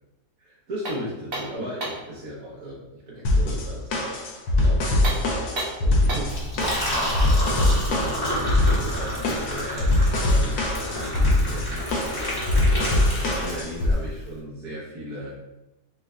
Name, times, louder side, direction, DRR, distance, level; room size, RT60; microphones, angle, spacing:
voice 1, 0.4-4.2 4.5-8.1 8.7-12.7 13.2-15.4, equal, 60° right, -6 dB, 1.2 m, -37 dB
sound 1, 0.8-2.1 4.9-6.4, right 2 dB, 40° right, 0.9 m, -32 dB
sound 2, 3.2-13.9, left 1 dB, 70° left, 1.2 m, -22 dB
Liquid, 6.2-13.9, equal, 15° left, 1.1 m, -30 dB
6.1 x 2.6 x 2.2 m, 0.96 s
omnidirectional pair, 1.8 m